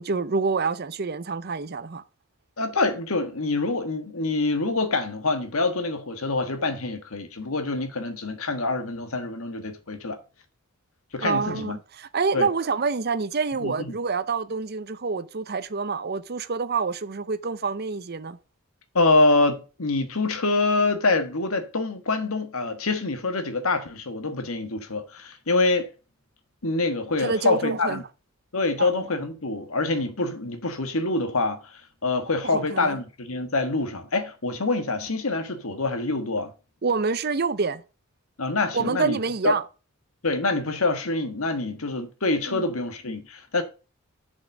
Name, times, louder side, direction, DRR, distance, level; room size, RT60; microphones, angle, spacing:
voice 1, 0.0-2.0 11.2-18.4 27.2-28.0 28.8-28.9 32.5-33.0 36.8-37.8 38.7-39.6 42.5-42.7, right 4 dB, 45° right, 0.6 m, -27 dB
voice 2, 2.6-10.2 11.1-11.8 12.3-12.5 13.6-13.9 18.9-25.9 26.6-28.0 28.5-36.5 38.4-39.2 39.4-39.5 40.2-43.6, left 3 dB, 70° left, 1.4 m, -25 dB
7.0 x 5.5 x 7.2 m
head